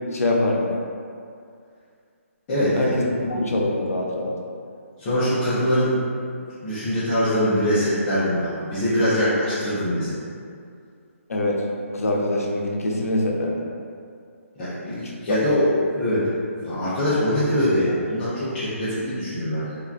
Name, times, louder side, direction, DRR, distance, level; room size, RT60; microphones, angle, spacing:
voice 1, 0.1-0.8 2.7-4.3 11.3-11.6 11.9-13.6 15.3-15.4, left 1 dB, 80° left, -1 dB, 0.6 m, -24 dB
voice 2, 2.5-2.9 3.3-3.5 5.0-6.0 6.6-10.1 14.6-15.6 15.9-16.2 16.6-19.8, equal, 15° left, -15 dB, 0.5 m, -23 dB
3.7 x 2.4 x 2.3 m, 2.3 s
hypercardioid pair, 170°, 8 cm